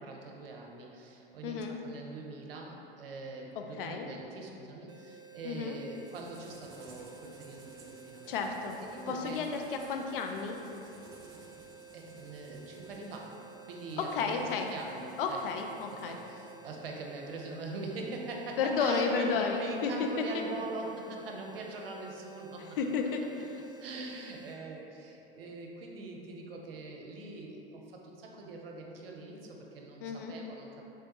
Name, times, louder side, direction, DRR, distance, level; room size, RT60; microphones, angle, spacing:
voice 1, 0.0-8.3 8.9-9.4 11.9-15.4 15.9-22.8 23.8-30.9, right 3 dB, 75° right, 0 dB, 0.6 m, -43 dB
voice 2, 1.4-1.8 3.8-4.1 5.4-5.8 8.3-8.8 9.1-10.6 14.0-14.7 15.2-16.2 18.6-20.4 22.8-23.7 30.0-30.4, left 5 dB, 65° left, 3 dB, 0.5 m, -32 dB
sound 1, 4.9-24.6, right 7 dB, 15° right, 0.3 m, -53 dB
sound 2, 5.9-16.7, right 2 dB, 40° right, 0.7 m, -57 dB
3.5 x 3.3 x 2.8 m, 2.9 s
figure-of-eight pair, 85°, 29 cm